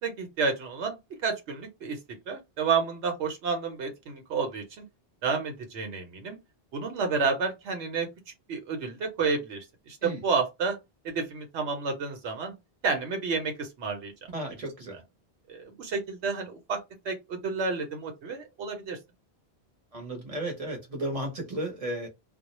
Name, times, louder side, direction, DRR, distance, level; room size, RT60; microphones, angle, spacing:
voice 1, 0.0-2.0 2.3-4.8 5.2-6.4 6.7-8.1 8.5-10.8 11.0-12.5 12.8-14.1 15.5-16.8 17.0-19.0, right 4 dB, 90° right, 1.0 m, -30 dB
voice 2, 14.3-15.0 19.9-22.1, right 1 dB, 35° right, 0.9 m, -34 dB
2.3 x 2.1 x 2.9 m
omnidirectional pair, 1.1 m